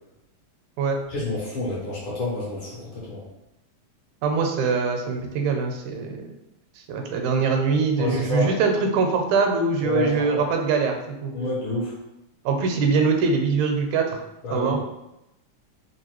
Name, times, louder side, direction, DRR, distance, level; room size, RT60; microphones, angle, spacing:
voice 1, 1.1-3.2 8.0-8.5 9.8-10.4 11.3-11.9 14.4-14.8, left 2 dB, 60° left, -6 dB, 1.4 m, -28 dB
voice 2, 4.2-6.2 6.9-11.3 12.5-14.2 14.5-14.8, right 5 dB, 85° right, 3 dB, 1.9 m, -23 dB
4.5 x 2.5 x 2.9 m, 0.89 s
omnidirectional pair, 3.4 m